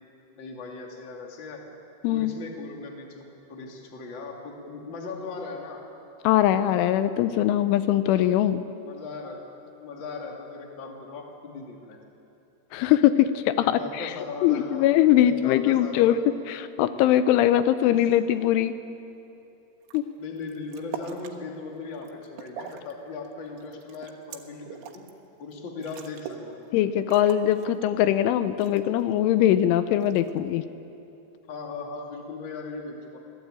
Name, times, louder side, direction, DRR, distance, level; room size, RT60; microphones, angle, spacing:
voice 1, 0.3-1.6 2.1-5.9 8.8-9.5 9.8-12.0 13.6-16.2 17.9-18.2 20.2-25.1 25.4-26.6 31.5-33.2, left 4 dB, 35° left, 1 dB, 2.4 m, -38 dB
voice 2, 6.2-8.6 12.7-14.1 14.4-16.2 16.5-18.7 19.9-20.0 26.7-30.6, left 12 dB, 85° left, 12 dB, 3.2 m, -21 dB
sound 1, 19.8-20.0 20.4-21.4 21.8-22.9 23.2-25.1 25.5-25.6 25.8-26.5 26.8-26.9 27.1-28.2 28.6-29.1 30.0-30.5, right 8 dB, 90° right, 3.9 m, -42 dB
26.0 x 18.5 x 9.0 m, 2.8 s
omnidirectional pair, 5.5 m